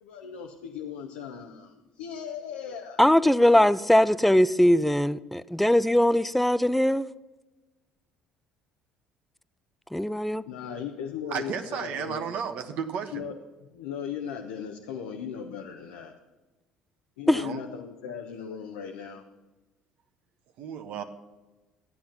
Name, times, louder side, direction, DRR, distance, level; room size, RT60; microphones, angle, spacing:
voice 1, 0.0-3.0 10.5-12.3 13.1-13.4 13.7-16.1 17.2-19.2, left 7 dB, 85° left, 2 dB, 0.9 m, -37 dB
voice 2, 3.0-7.1 9.9-10.4 17.3-17.4, left 1 dB, 5° left, 17 dB, 0.5 m, -21 dB
voice 3, 11.3-13.3 17.3-17.6 20.6-21.0, right 7 dB, 65° right, 6 dB, 1.2 m, -33 dB
13.0 x 8.5 x 5.9 m, 1.1 s
hypercardioid pair, 70°, 3 cm